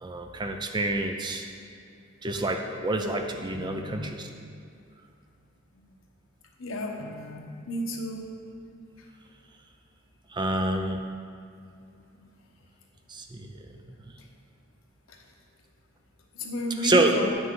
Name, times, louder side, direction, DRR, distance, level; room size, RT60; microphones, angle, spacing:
voice 1, 0.0-1.5 2.2-4.3 10.3-11.0 13.1-13.8 16.8-17.2, right 2 dB, 20° right, 5 dB, 0.5 m, -27 dB
voice 2, 3.5-3.9 6.6-7.4 7.7-8.3 16.4-17.3, left 1 dB, 75° left, 1 dB, 1.0 m, -32 dB
9.1 x 6.0 x 3.8 m, 2.4 s
head